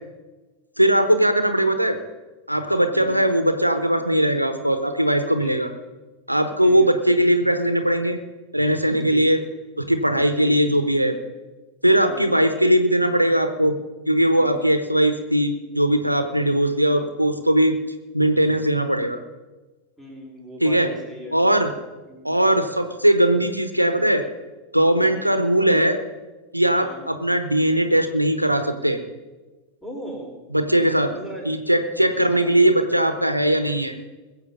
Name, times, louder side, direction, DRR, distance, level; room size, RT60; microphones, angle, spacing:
voice 1, 0.8-2.0 2.5-5.7 6.3-8.2 8.5-9.4 9.8-11.2 11.8-13.7 14.1-17.8 18.1-19.2 20.6-20.9 21.3-21.7 22.2-24.2 24.7-26.0 26.5-29.0 30.5-31.1 31.4-33.9, right 1 dB, 90° right, 9 dB, 1.0 m, -19 dB
voice 2, 6.6-6.9 9.1-9.4 10.3-10.6 12.1-12.4 14.3-14.7 16.4-16.6 20.0-21.4 22.1-22.4 25.0-25.2 26.8-27.1 29.8-30.4 31.1-31.5 31.9-32.8, right 1 dB, 5° left, -1 dB, 4.7 m, -39 dB
21.0 x 7.9 x 5.5 m, 1.2 s
figure-of-eight pair, 90°, 0 cm